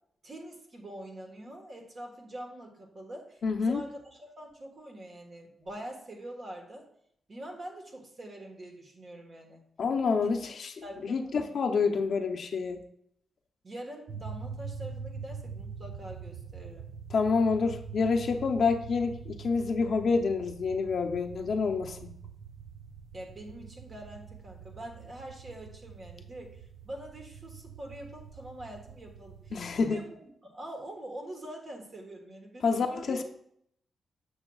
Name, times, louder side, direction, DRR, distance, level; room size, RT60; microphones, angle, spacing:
voice 1, 0.2-6.9 7.3-9.6 10.2-10.4 10.8-11.5 13.6-16.9 23.1-33.2, right 1 dB, 45° right, 1 dB, 1.4 m, -44 dB
voice 2, 3.4-3.8 9.8-10.7 11.0-12.8 17.1-22.1 29.5-30.0 32.6-33.2, left 4 dB, 60° left, 5 dB, 0.6 m, -28 dB
sound 1, 14.1-29.9, right 5 dB, 70° right, 0.6 m, -44 dB
7.8 x 6.2 x 2.3 m, 0.72 s
cardioid pair, 100°, 0 cm